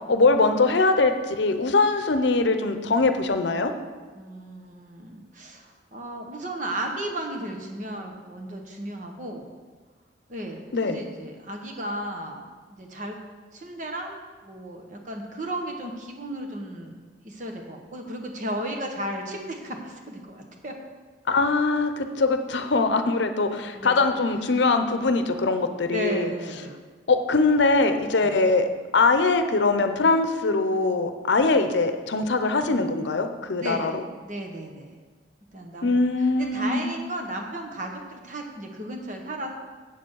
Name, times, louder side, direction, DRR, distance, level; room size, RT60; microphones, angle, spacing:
voice 1, 0.1-3.7 10.7-11.0 21.3-26.3 27.1-34.0 35.8-36.9, left 3 dB, 75° left, 8 dB, 0.7 m, -22 dB
voice 2, 4.1-9.5 10.3-13.2 13.5-14.2 14.4-16.9 17.2-20.7 23.7-24.0 25.8-26.8 28.2-28.3 33.6-35.0 35.5-35.9 36.4-39.5, right 1 dB, 45° right, 2 dB, 1.2 m, -34 dB
8.0 x 7.0 x 6.3 m, 1.4 s
head